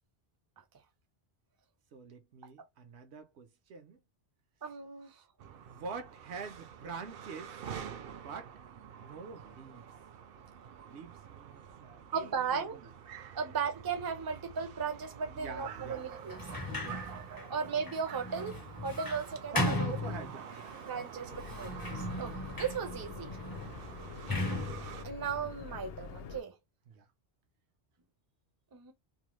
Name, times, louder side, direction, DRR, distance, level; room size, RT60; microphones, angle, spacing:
voice 1, 1.9-4.0 5.7-7.6 8.1-8.5 9.0-9.8 10.9-12.9 15.3-16.1 16.6-17.1 17.5-17.6 19.5-20.7 23.7-23.9 26.9-27.1, right 5 dB, 80° right, 1.0 m, -46 dB
voice 2, 4.6-5.2 12.1-12.8 13.3-16.4 17.5-19.7 20.9-23.3 25.0-26.5 28.7-28.9, right 6 dB, 30° right, 0.4 m, -36 dB
sound 1, 5.4-25.0, right 8 dB, 65° right, 0.7 m, -48 dB
Sliding door, 16.2-20.8 21.4-26.2, left 1 dB, 25° left, 0.5 m, -38 dB
sound 2, 21.3-26.4, left 6 dB, 70° left, 0.8 m, -47 dB
2.6 x 2.1 x 3.0 m
omnidirectional pair, 1.1 m